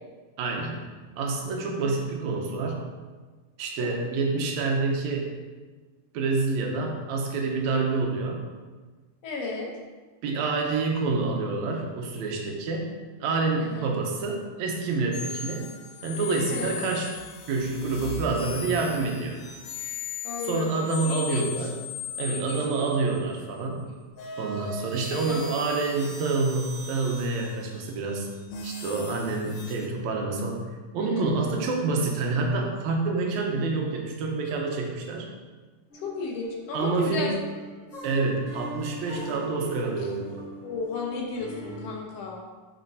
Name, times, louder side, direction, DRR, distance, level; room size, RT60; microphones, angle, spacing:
voice 1, 0.4-0.8 1.2-2.8 3.6-5.4 6.1-8.4 10.2-12.9 13.2-15.7 16.0-17.1 17.5-19.4 20.4-21.8 22.2-23.9 24.4-28.3 28.6-30.6 30.9-35.3 36.7-37.3 38.0-40.4, right 3 dB, 70° right, 1 dB, 2.1 m, -27 dB
voice 2, 9.2-9.7 13.6-13.9 16.5-16.8 20.2-21.4 22.3-22.8 25.1-25.4 31.0-31.5 35.9-37.3 40.6-42.4, left 3 dB, 70° left, -1 dB, 1.7 m, -34 dB
sound 1, 15.1-23.4 24.1-29.9, left 5 dB, 90° left, 2.4 m, -38 dB
sound 2, 35.9-41.9, right 1 dB, 30° left, 2.1 m, -42 dB
11.0 x 4.3 x 2.7 m, 1.3 s
omnidirectional pair, 3.5 m